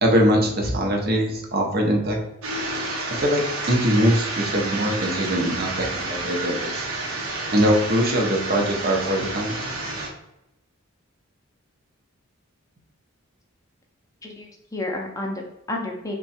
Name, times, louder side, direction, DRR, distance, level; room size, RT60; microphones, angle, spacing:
voice 1, 0.0-2.2 3.1-3.4 3.7-6.9 7.5-9.7, equal, 45° right, 2 dB, 0.7 m, -22 dB
sound 1, 2.4-10.1, right 2 dB, 80° right, 0.8 m, -30 dB
voice 2, 14.2-16.1, left 2 dB, 15° left, 0 dB, 0.6 m, -31 dB
3.6 x 2.3 x 4.1 m, 0.89 s
head